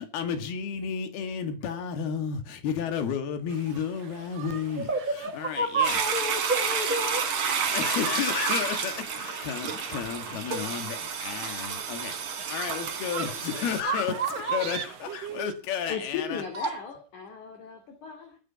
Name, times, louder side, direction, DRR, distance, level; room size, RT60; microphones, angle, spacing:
voice 1, 0.0-4.9 5.2-6.1 7.7-16.4, left 7 dB, 70° left, 3.9 m, -32 dB
sound 1, 3.5-15.5, right 9 dB, 70° right, 1.5 m, -45 dB
voice 2, 4.9-7.2 13.1-13.3 13.8-14.7 16.5-16.7, right 3 dB, 15° right, 1.8 m, -29 dB
Toilet flush, 5.8-13.8, right 6 dB, 50° right, 3.2 m, -30 dB
voice 3, 15.9-18.4, left 7 dB, 50° left, 3.8 m, -37 dB
21.5 x 10.0 x 5.8 m
omnidirectional pair, 4.8 m